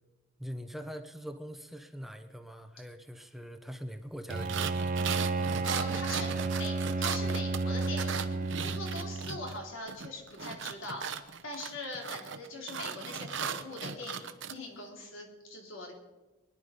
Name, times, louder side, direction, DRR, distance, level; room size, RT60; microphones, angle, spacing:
voice 1, 0.4-4.9, equal, ahead, 7 dB, 0.8 m, -43 dB
Bowed string instrument, 4.3-9.6, right 3 dB, 40° right, 0.6 m, -32 dB
sound 1, 4.3-9.6 9.9-14.5, right 7 dB, 65° right, 0.9 m, -37 dB
voice 2, 5.6-6.3 6.6-8.3 8.6-11.0 11.4-15.9, left 2 dB, 75° left, 0 dB, 3.7 m, -41 dB
23.0 x 10.5 x 5.3 m, 1.1 s
head